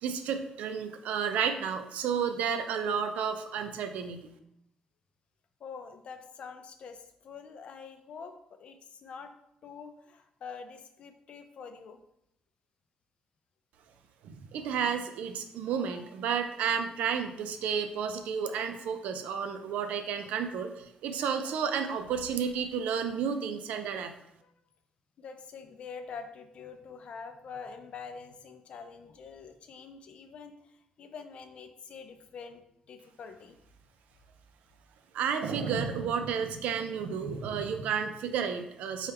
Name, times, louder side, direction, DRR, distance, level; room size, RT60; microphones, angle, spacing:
voice 1, 0.0-4.3 14.2-24.1 35.1-39.1, right 7 dB, 85° right, 7 dB, 0.4 m, -31 dB
voice 2, 5.6-9.3 9.6-12.0 24.4-24.5 25.2-32.6 32.9-33.6, left 5 dB, 50° left, 7 dB, 0.4 m, -45 dB
3.4 x 2.3 x 4.3 m, 0.77 s
cardioid pair, 140°, 2 cm